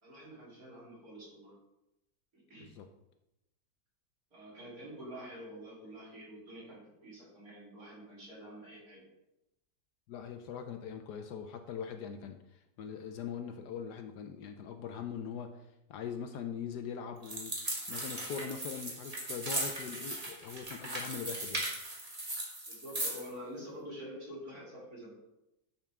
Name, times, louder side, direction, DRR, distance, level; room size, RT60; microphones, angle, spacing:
voice 1, 0.0-1.5 2.3-2.7 4.3-9.0 22.7-25.1, equal, 50° right, -6 dB, 3.8 m, -47 dB
voice 2, 10.1-15.6 15.9-21.6, left 7 dB, 70° left, 7 dB, 1.1 m, -42 dB
sound 1, 17.2-23.3, right 1 dB, 20° right, 1.6 m, -38 dB
10.5 x 5.8 x 3.6 m, 0.91 s
omnidirectional pair, 2.0 m